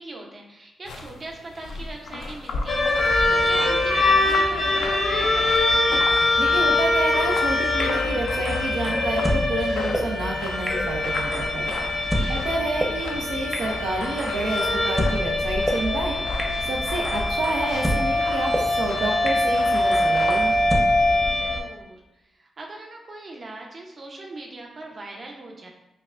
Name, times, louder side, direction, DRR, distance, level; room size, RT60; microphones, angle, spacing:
voice 1, 0.0-5.8 12.0-12.5 17.0-17.4 21.3-25.7, right 2 dB, 50° right, 0 dB, 0.7 m, -40 dB
sound 1, 0.8-20.6, left 3 dB, 85° left, 0.4 m, -38 dB
sound 2, 2.7-21.6, left 2 dB, 65° left, 0.7 m, -23 dB
voice 2, 6.4-11.8 12.3-16.2 16.7-20.5, right 2 dB, 80° right, -1 dB, 0.4 m, -29 dB
sound 3, 7.8-7.9 8.3-9.4 9.9-10.0 10.7-10.8 11.1-12.3 12.8-12.9 13.5-13.6 14.0-15.1 15.7-15.8 16.4-16.5 16.9-18.0 18.5-18.6 19.3-19.4 19.7-20.8, equal, 15° right, 0.7 m, -29 dB
5.5 x 2.1 x 2.4 m, 0.92 s
cardioid pair, 65°, 0 cm